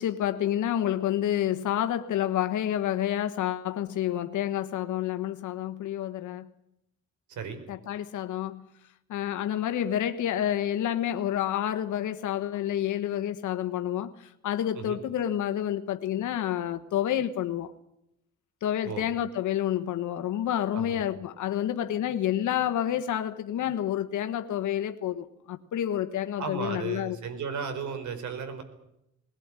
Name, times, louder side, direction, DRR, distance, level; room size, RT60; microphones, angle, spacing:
voice 1, 0.0-6.5 7.7-8.7 9.1-17.7 18.6-27.2, left 11 dB, 80° left, 1.4 m, -29 dB
voice 2, 7.3-7.6 14.7-15.0 18.8-19.0 20.7-21.0 26.4-28.6, right 6 dB, 75° right, 4.7 m, -35 dB
20.0 x 18.5 x 9.8 m
cardioid pair, 100°, 30 cm